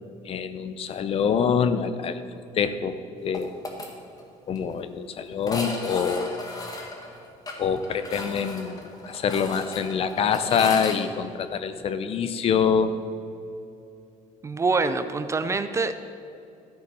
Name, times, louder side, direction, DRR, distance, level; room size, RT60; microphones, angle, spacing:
voice 1, 0.2-2.2 2.5-2.9 3.2-3.6 4.5-6.5 7.6-13.0, left 6 dB, 45° left, 11 dB, 0.7 m, -25 dB
sound 1, 3.3-3.9 4.2-4.3 4.6-4.7 5.4-11.0, left 2 dB, 25° left, 1.6 m, -36 dB
voice 2, 14.4-16.0, right 3 dB, 20° right, 10 dB, 0.4 m, -25 dB
13.5 x 8.5 x 5.5 m, 2.7 s
cardioid pair, 150°, 14 cm